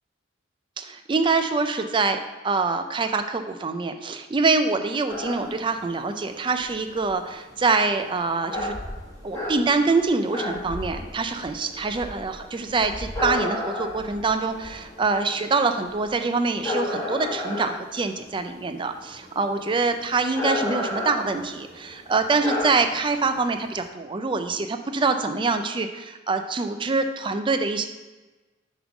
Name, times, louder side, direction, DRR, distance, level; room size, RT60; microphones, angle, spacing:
voice 1, 0.8-8.7 9.2-27.9, right 4 dB, 25° right, 7 dB, 0.4 m, -25 dB
sound 1, 5.1-23.9, left 2 dB, 20° left, 1.4 m, -33 dB
7.3 x 3.7 x 5.9 m, 1.2 s
head